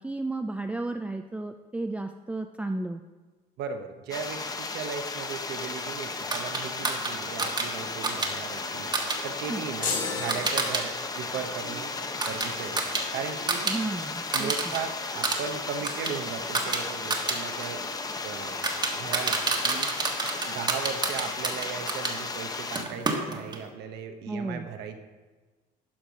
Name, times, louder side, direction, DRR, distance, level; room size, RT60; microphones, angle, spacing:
voice 1, 0.0-3.0 9.5-9.6 13.6-14.7 24.3-24.7, right 2 dB, 5° right, 6 dB, 0.4 m, -33 dB
voice 2, 3.6-8.9 9.2-11.9 12.3-12.8 13.1-13.7 14.3-17.9 18.2-18.6 18.9-19.9 20.4-25.0, right 6 dB, 80° right, 6 dB, 0.9 m, -37 dB
sound 1, 4.1-22.8, left 3 dB, 20° left, 0.8 m, -35 dB
sound 2, 6.3-10.8 11.1-13.8 14.1-14.8 15.1-22.2 22.7-23.7, right 3 dB, 25° right, 1.3 m, -30 dB
sound 3, 9.8-11.4, left 4 dB, 55° left, 2.2 m, -33 dB
12.0 x 4.6 x 5.2 m, 1.3 s
cardioid pair, 110°, 17 cm